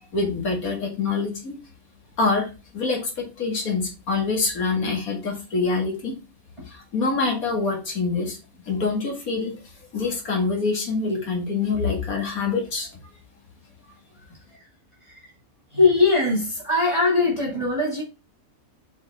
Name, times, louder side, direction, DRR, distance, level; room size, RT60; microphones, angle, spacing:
voice 1, 0.1-1.6 2.2-6.2 6.7-8.4 8.7-9.6 9.9-12.9, left 4 dB, 85° left, 2.4 m, -25 dB
voice 2, 15.7-18.0, left 3 dB, 20° right, 2.2 m, -21 dB
7.1 x 5.0 x 3.5 m
omnidirectional pair, 1.5 m